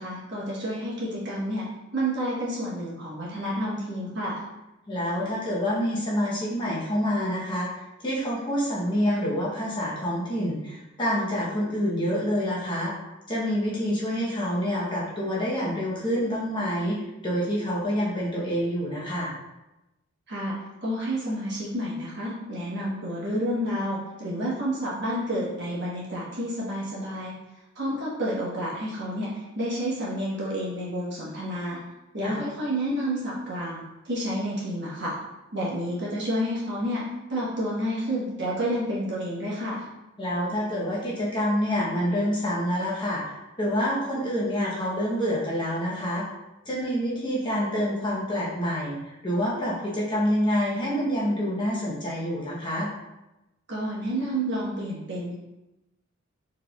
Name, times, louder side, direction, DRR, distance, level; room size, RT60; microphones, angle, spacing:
voice 1, 0.0-1.6 1.9-4.4 20.3-20.6 20.8-27.3 27.7-31.8 32.1-35.1 35.5-37.0 37.3-39.8 53.7-55.4, equal, 55° right, -6 dB, 1.2 m, -30 dB
voice 2, 4.9-12.9 13.3-19.3 32.2-32.4 40.2-46.2 46.7-49.0 49.2-52.9, equal, 25° left, -6 dB, 0.9 m, -27 dB
4.4 x 3.4 x 2.4 m, 0.97 s
head